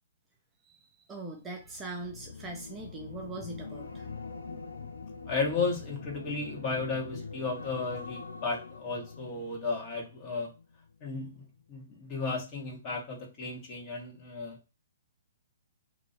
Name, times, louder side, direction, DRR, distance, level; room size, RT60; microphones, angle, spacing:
voice 1, 0.6-4.1, right 2 dB, 15° right, 0 dB, 0.7 m, -41 dB
sound 1, 1.6-11.0 11.3-11.6, left 4 dB, 85° left, 0.6 m, -44 dB
voice 2, 5.2-10.5 11.0-14.6, left 4 dB, 35° left, -2 dB, 1.6 m, -34 dB
2.9 x 2.7 x 4.2 m, 0.28 s
hypercardioid pair, 130°, 0 cm